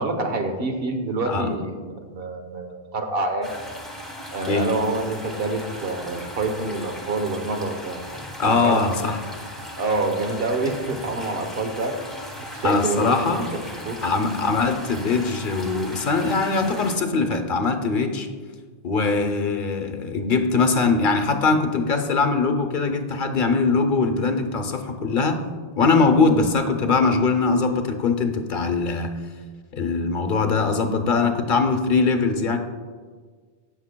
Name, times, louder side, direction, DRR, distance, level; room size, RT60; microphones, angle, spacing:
voice 1, 0.0-3.5 4.3-8.0 8.5-8.8 9.8-11.9 12.4-13.2 13.8-14.0, right 2 dB, 65° right, 5 dB, 1.2 m, -27 dB
voice 2, 1.3-1.6 4.5-4.7 8.4-9.2 12.6-13.5 14.0-18.3 18.8-25.4 25.8-29.1 29.7-32.6, left 4 dB, 55° left, 6 dB, 0.9 m, -21 dB
sound 1, 3.4-17.0, equal, ahead, 1.3 m, -37 dB
17.5 x 6.4 x 2.2 m, 1.5 s
omnidirectional pair, 1.1 m